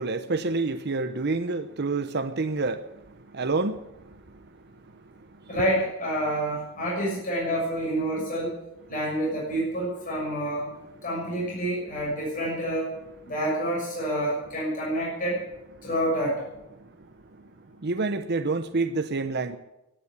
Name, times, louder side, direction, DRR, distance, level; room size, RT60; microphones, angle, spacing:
voice 1, 0.0-4.5 5.2-5.5 16.8-16.9 17.4-17.5 17.8-19.6, right 3 dB, 55° right, 0.9 m, -29 dB
voice 2, 5.5-8.5 8.9-10.7 11.0-12.9 13.2-15.4 15.8-16.4, right 1 dB, 40° left, 6.7 m, -28 dB
16.0 x 10.0 x 8.5 m
head